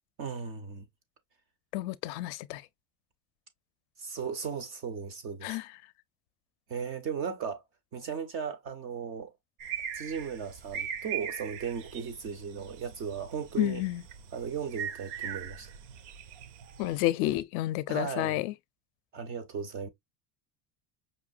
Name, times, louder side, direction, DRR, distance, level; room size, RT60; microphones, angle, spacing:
voice 1, 0.2-0.9 4.0-5.6 6.7-7.6 7.9-9.3 9.9-13.8 14.3-15.7 17.9-18.4 19.1-19.9, right 6 dB, 30° right, 0.4 m, -36 dB
voice 2, 1.7-2.6 5.4-5.7 13.6-14.0 16.8-18.5, left 16 dB, 55° left, 0.5 m, -30 dB
sound 1, 9.6-17.0, right 8 dB, 80° right, 0.9 m, -41 dB
5.5 x 2.9 x 2.4 m
cardioid pair, 175°, 49 cm